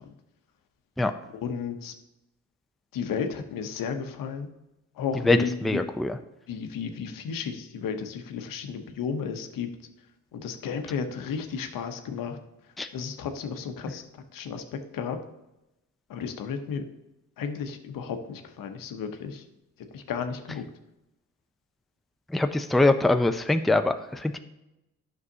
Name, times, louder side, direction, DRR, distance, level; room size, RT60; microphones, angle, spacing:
voice 1, 1.3-1.9 2.9-4.5 5.0-5.8 6.5-9.7 10.3-12.4 12.9-14.0 14.3-15.2 16.1-16.8 17.4-19.4 19.9-20.6, left 6 dB, 75° left, 7 dB, 0.9 m, -33 dB
voice 2, 5.3-6.2 12.8-12.9 22.3-24.4, left 2 dB, ahead, 8 dB, 0.5 m, -23 dB
9.5 x 6.4 x 2.8 m, 0.93 s
supercardioid pair, 65°, 33 cm